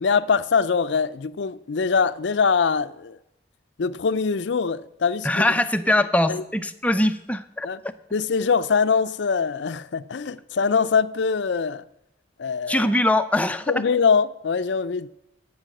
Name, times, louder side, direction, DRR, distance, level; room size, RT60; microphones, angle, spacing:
voice 1, 0.0-3.2 3.8-5.5 6.3-6.4 7.6-7.8 8.1-11.8 12.4-12.9 13.7-15.1, left 5 dB, 75° left, 0.5 m, -23 dB
voice 2, 5.2-7.7 12.7-13.8, left 1 dB, 10° left, 0.5 m, -22 dB
16.0 x 5.6 x 7.7 m
head